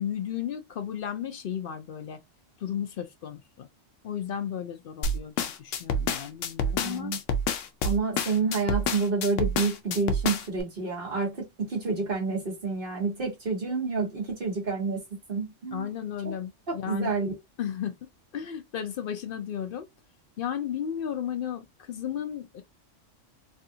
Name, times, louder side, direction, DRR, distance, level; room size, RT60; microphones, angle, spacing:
voice 1, 0.0-2.2 2.6-3.7 4.0-7.1 15.7-17.1 17.6-17.9 18.3-19.9 20.4-22.6, left 9 dB, 60° left, 0.6 m, -34 dB
sound 1, 5.0-10.6, left 2 dB, 80° left, 0.9 m, -28 dB
voice 2, 6.8-7.2 7.8-15.0 15.3-15.9 16.7-17.3, right 4 dB, 45° right, 1.6 m, -29 dB
3.3 x 2.4 x 2.7 m
omnidirectional pair, 1.3 m